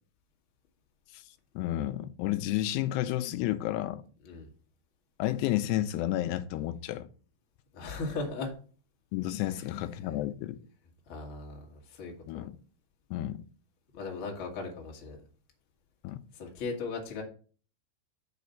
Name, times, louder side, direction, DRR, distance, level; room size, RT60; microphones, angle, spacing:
voice 1, 1.6-4.0 5.2-7.1 9.1-10.6 12.3-12.5 13.1-13.4 16.0-16.2, left 14 dB, 85° left, 2.5 m, -31 dB
voice 2, 7.7-8.5 10.0-10.2 11.1-12.5 13.9-15.2 16.3-17.2, left 3 dB, 65° left, 1.3 m, -38 dB
6.5 x 5.1 x 6.8 m
omnidirectional pair, 5.1 m